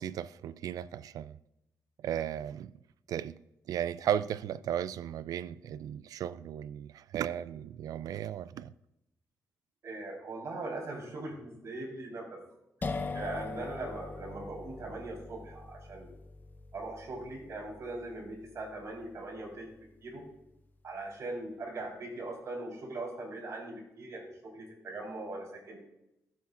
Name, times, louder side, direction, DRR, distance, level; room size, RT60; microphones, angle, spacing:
voice 1, 0.0-1.4 2.0-2.7 3.1-3.4 3.7-8.7, right 10 dB, 85° right, 0.3 m, -35 dB
voice 2, 9.8-12.4 12.8-16.1 16.7-19.7 20.0-20.2 20.8-24.3 24.5-25.8, right 2 dB, 55° right, 4.0 m, -40 dB
sound 1, 12.8-20.4, left 3 dB, 30° left, 0.7 m, -42 dB
16.0 x 7.2 x 2.5 m
cardioid pair, 105°, 6 cm